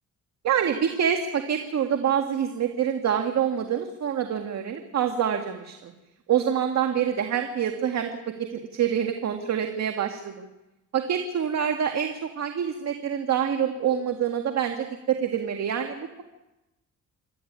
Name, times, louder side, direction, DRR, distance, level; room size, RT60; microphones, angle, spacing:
voice 1, 0.4-5.9 6.3-8.1 8.4-10.5 10.9-16.2, right 8 dB, 60° right, 5 dB, 1.9 m, -26 dB
27.0 x 12.5 x 9.5 m, 1.0 s
cardioid pair, 90°, 30 cm